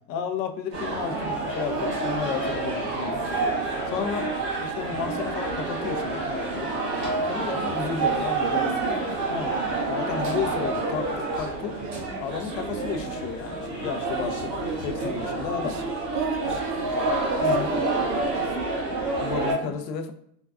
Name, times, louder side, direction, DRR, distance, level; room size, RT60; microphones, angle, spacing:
voice 1, 0.1-3.2 3.9-4.3 4.6-6.7 7.3-8.8 9.3-9.5 9.9-11.7 12.2-14.5 14.8-15.8 17.4-17.7 19.2-20.1, left 6 dB, 80° left, 7 dB, 0.7 m, -32 dB
sound 1, 0.7-19.5, right 2 dB, 20° right, 0.3 m, -28 dB
voice 2, 8.4-9.3 10.1-10.2 11.7-12.2 15.6-15.8 16.1-19.8, right 7 dB, 65° right, 7 dB, 0.6 m, -37 dB
3.8 x 2.3 x 2.2 m, 0.70 s
supercardioid pair, 160°, 49 cm